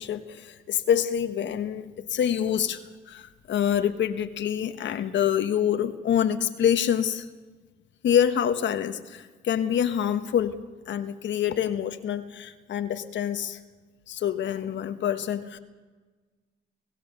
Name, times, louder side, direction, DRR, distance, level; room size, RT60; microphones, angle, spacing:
voice 1, 0.0-7.3 8.0-10.6 10.9-13.6 14.1-15.6, left 9 dB, 70° left, 1.4 m, -26 dB
29.0 x 16.5 x 6.8 m
cardioid pair, 90°, 20 cm